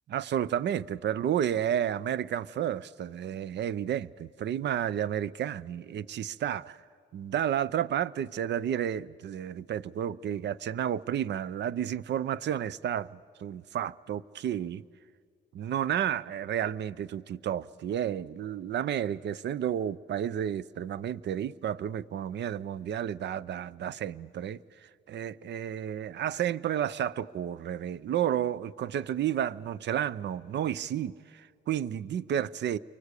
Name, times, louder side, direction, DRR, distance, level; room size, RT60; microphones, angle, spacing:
voice 1, 0.1-6.8 7.1-14.8 15.5-32.8, right 10 dB, 60° right, 0.7 m, -31 dB
29.5 x 23.5 x 8.3 m
cardioid pair, 90°, 20 cm